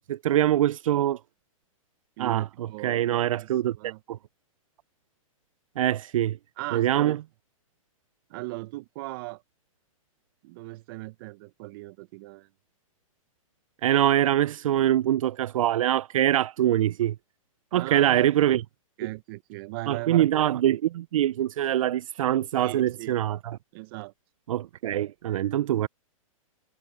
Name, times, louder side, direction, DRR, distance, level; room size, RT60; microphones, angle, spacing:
voice 1, 0.1-1.2 2.2-2.4 2.8-4.2 5.8-6.4 6.7-7.2 13.8-17.1 17.7-18.6 19.9-23.6 24.5-25.9, right 12 dB, 70° right, 0.5 m, -24 dB
voice 2, 2.2-4.0 6.6-7.2 8.3-9.4 10.4-12.5 17.7-18.5 19.0-20.3 22.5-23.2 23.7-24.1, right 21 dB, 40° right, 1.0 m, -38 dB
hypercardioid pair, 145°, 18 cm